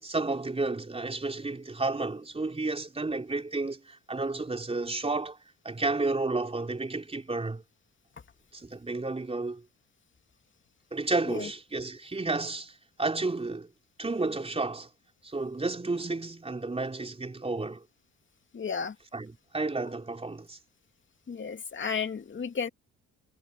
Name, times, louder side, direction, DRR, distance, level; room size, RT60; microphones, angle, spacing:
voice 1, 0.0-5.4 5.6-7.6 8.5-9.6 10.9-13.7 14.0-14.9 15.2-17.8 19.1-20.6, right 3 dB, 20° right, 4.1 m, -31 dB
voice 2, 18.5-19.0 21.3-22.7, left 6 dB, 40° left, 2.7 m, -33 dB
cardioid pair, 90°, 30 cm